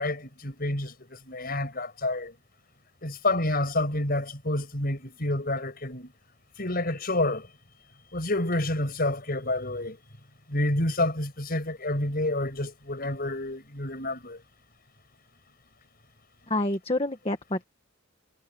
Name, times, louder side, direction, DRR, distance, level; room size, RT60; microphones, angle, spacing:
voice 1, 0.0-2.3 3.0-6.1 6.6-7.5 8.1-10.0 10.5-14.4, left 2 dB, 45° left, 6.2 m, -29 dB
voice 2, 16.5-17.6, left 1 dB, 30° left, 1.6 m, -27 dB
head